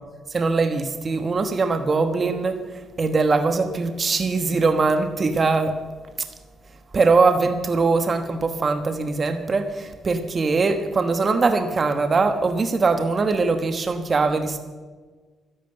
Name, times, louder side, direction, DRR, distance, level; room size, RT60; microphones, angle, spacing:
voice 1, 0.3-5.8 6.9-14.6, right 4 dB, 35° right, 8 dB, 1.2 m, -21 dB
12.5 x 11.0 x 7.8 m, 1.4 s
cardioid pair, 90°, 0 cm